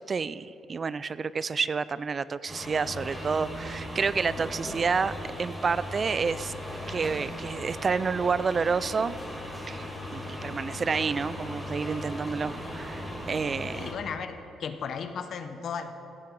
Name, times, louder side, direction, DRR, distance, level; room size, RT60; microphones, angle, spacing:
voice 1, 0.0-5.1 5.4-6.5 6.9-9.1 9.7-13.9, right 5 dB, 40° right, 17 dB, 0.3 m, -29 dB
sound 1, 2.5-13.9, left 1 dB, 5° right, 2.3 m, -38 dB
voice 2, 13.7-15.9, left 6 dB, 60° left, 9 dB, 0.8 m, -35 dB
16.0 x 8.7 x 4.6 m, 3.0 s
cardioid pair, 90°, 0 cm